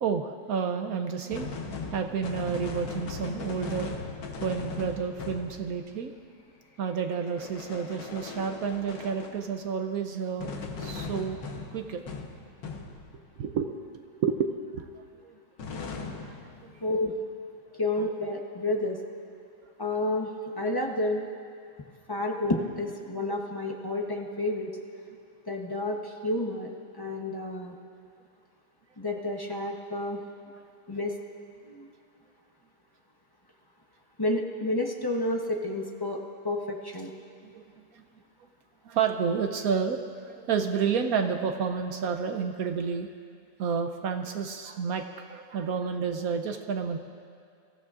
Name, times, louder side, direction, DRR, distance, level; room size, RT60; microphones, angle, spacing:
voice 1, 0.0-1.5 1.9-3.9 4.4-6.1 6.8-10.5 10.8-11.4 11.7-12.0 13.4-14.8 16.2-16.3 37.5-37.6 38.9-43.1 43.6-47.0, right 6 dB, 65° right, 6 dB, 0.9 m, -30 dB
sound 1, 1.3-6.1 7.1-9.7 10.4-13.3 15.6-17.0, left 4 dB, 80° left, 1.7 m, -39 dB
voice 2, 16.8-17.1 17.8-19.0 19.8-21.3 22.1-24.8 25.5-27.7 29.0-30.2 30.9-31.2 31.6-31.9 34.2-37.1, left 2 dB, 25° left, 0 dB, 0.4 m, -30 dB
25.5 x 14.5 x 2.5 m, 2.3 s
omnidirectional pair, 1.9 m